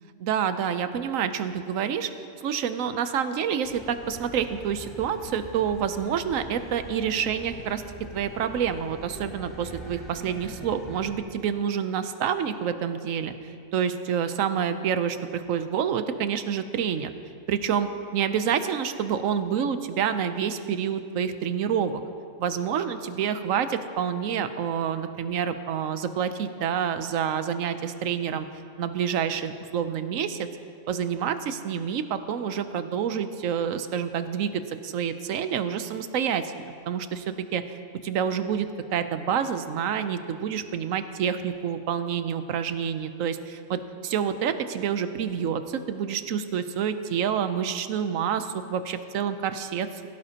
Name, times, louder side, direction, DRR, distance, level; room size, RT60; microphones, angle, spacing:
voice 1, 0.2-2.1 2.4-7.8 8.1-13.3 13.7-17.1 17.5-22.0 22.4-28.5 28.8-30.5 30.9-37.8 38.0-50.1, right 8 dB, 80° right, 10 dB, 1.1 m, -28 dB
sound 1, 3.6-11.2, equal, ahead, 3.5 m, -43 dB
17.0 x 16.0 x 2.9 m, 2.4 s
omnidirectional pair, 1.4 m